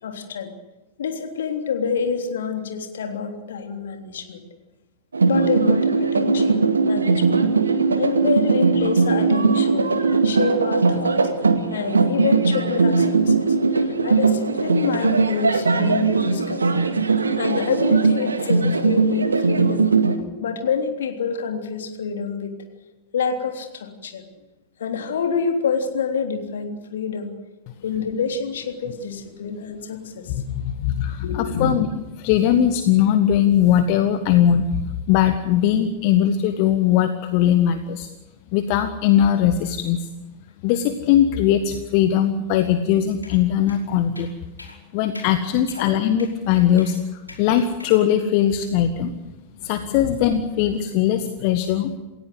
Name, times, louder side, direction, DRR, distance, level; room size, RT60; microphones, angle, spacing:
voice 1, 0.0-0.5 1.0-4.4 5.3-7.4 8.0-9.9 10.2-11.2 11.7-16.7 17.4-19.9 20.2-22.5 23.1-24.2 24.8-27.3 27.8-30.3 31.2-31.7 45.8-45.9 49.5-49.6 50.0-50.1, left 6 dB, 65° left, 4 dB, 3.4 m, -27 dB
sound 1, 5.1-20.2, right 4 dB, 75° right, 2.0 m, -19 dB
voice 2, 30.3-31.9 32.2-34.6 35.1-38.1 38.5-40.1 40.6-44.3 44.9-49.1 49.6-52.0, left 10 dB, 45° left, 8 dB, 1.6 m, -20 dB
sound 2, 43.2-43.4 43.7-43.8 44.1-44.3 44.6-44.8 45.1-45.3 45.7-45.8 46.2-46.3 46.8-46.9 47.3-47.4 47.8-48.0, left 2 dB, 85° left, 5.2 m, -42 dB
28.5 x 16.5 x 8.1 m, 1.1 s
figure-of-eight pair, 90°, 0 cm